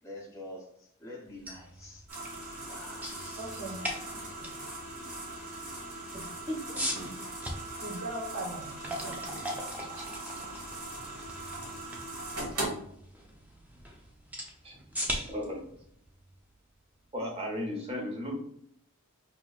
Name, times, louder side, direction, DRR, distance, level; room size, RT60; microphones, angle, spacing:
voice 1, 0.0-2.0 2.7-3.1 4.9-5.5, left 1 dB, 15° left, -3 dB, 1.1 m, -47 dB
sound 1, 1.2-17.2, equal, 5° right, 0.4 m, -41 dB
sound 2, 2.1-12.7, right 2 dB, 85° right, 1.3 m, -40 dB
voice 2, 3.4-3.8 4.4-4.6 7.8-9.2 9.9-10.1, right 1 dB, 55° right, -1 dB, 0.7 m, -40 dB
voice 3, 15.3-15.6 17.1-18.3, left 1 dB, 25° right, -1 dB, 0.9 m, -34 dB
4.2 x 3.0 x 2.4 m, 0.70 s
head